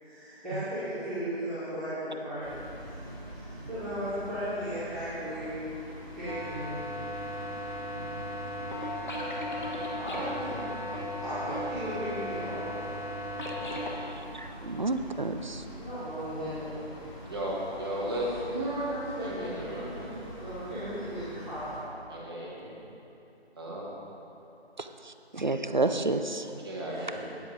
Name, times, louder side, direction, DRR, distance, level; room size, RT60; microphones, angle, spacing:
voice 1, 0.0-2.6 3.3-5.5 6.0-6.9 7.9-8.1 9.7-10.6 11.2-12.7 15.8-17.0 17.8-21.9 26.8-27.2, right 1 dB, ahead, -23 dB, 1.3 m, -36 dB
sound 1, 2.4-21.8, right 1 dB, 30° left, 2.6 m, -45 dB
sound 2, 6.3-14.0, left 1 dB, 45° left, 1.6 m, -36 dB
voice 2, 14.0-15.6 24.8-26.5, right 2 dB, 45° right, 8 dB, 0.5 m, -31 dB
voice 3, 17.3-18.5 19.2-19.9 22.1-22.8 23.6-23.9 26.6-27.2, equal, 20° right, -5 dB, 1.3 m, -35 dB
9.7 x 8.0 x 5.1 m, 2.8 s
figure-of-eight pair, 170°, 32 cm